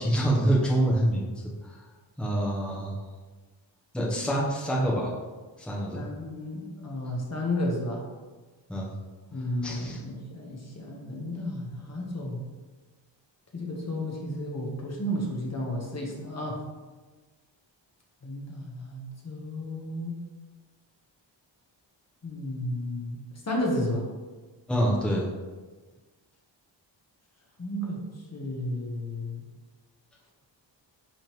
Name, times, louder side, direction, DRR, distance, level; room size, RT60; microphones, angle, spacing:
voice 1, 0.0-1.3 1.6-1.8 2.2-3.0 3.9-5.1 5.6-6.1 8.7-8.9 9.6-10.0 24.7-25.3, right 1 dB, ahead, -4 dB, 0.9 m, -26 dB
voice 2, 5.9-8.1 9.3-12.4 13.5-16.6 18.2-20.2 22.2-24.1 27.6-28.0 28.3-29.4, left 1 dB, 35° left, -1 dB, 1.2 m, -32 dB
10.5 x 3.7 x 3.1 m, 1.3 s
wide cardioid pair, 170°, 46 cm